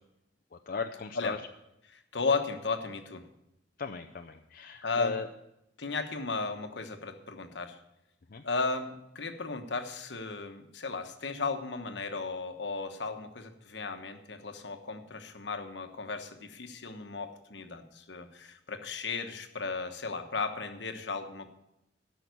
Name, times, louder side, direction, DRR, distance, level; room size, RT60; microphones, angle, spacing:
voice 1, 0.5-1.4 3.8-5.3 8.3-8.4, left 4 dB, 55° left, 4 dB, 0.6 m, -37 dB
voice 2, 2.1-3.2 4.8-5.1 5.8-7.8 8.4-21.5, left 4 dB, 75° left, 6 dB, 1.2 m, -35 dB
13.0 x 5.7 x 9.3 m, 0.86 s
head